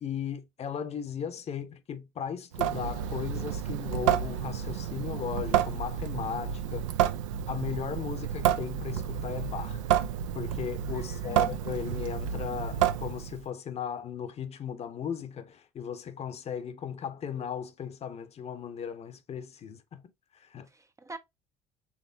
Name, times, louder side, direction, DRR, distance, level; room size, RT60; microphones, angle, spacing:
voice 1, 0.0-6.9 7.5-9.8 10.3-20.0 20.3-20.7, left 8 dB, 40° left, 0.8 m, -37 dB
Water tap faucet / Sink (filling or washing) / Drip, 2.5-13.4, right 10 dB, 75° right, 0.4 m, -30 dB
sound 1, 5.7-6.1 9.3-10.4, right 3 dB, 55° right, 1.1 m, -49 dB
voice 2, 10.9-11.6 20.7-21.2, right 3 dB, 20° right, 0.5 m, -45 dB
5.8 x 3.5 x 2.6 m
hypercardioid pair, 60°, 16 cm